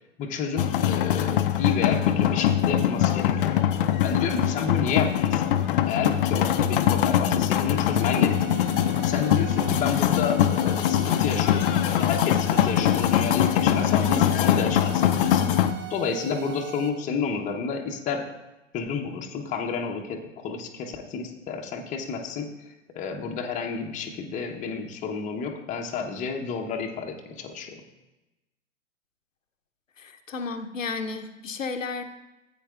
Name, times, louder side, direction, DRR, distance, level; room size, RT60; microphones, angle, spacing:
voice 1, 0.2-3.6 4.0-5.4 5.8-8.4 9.0-15.5 15.9-18.2 18.7-27.8, left 5 dB, 20° left, 2 dB, 0.9 m, -30 dB
sound 1, 0.6-15.7, left 11 dB, 45° left, 0.6 m, -22 dB
sound 2, 7.9-16.9, right 9 dB, 50° right, 1.1 m, -40 dB
voice 2, 30.0-32.0, left 4 dB, 80° left, 7 dB, 0.8 m, -33 dB
14.5 x 8.5 x 2.4 m, 1.0 s
figure-of-eight pair, 105°, 38 cm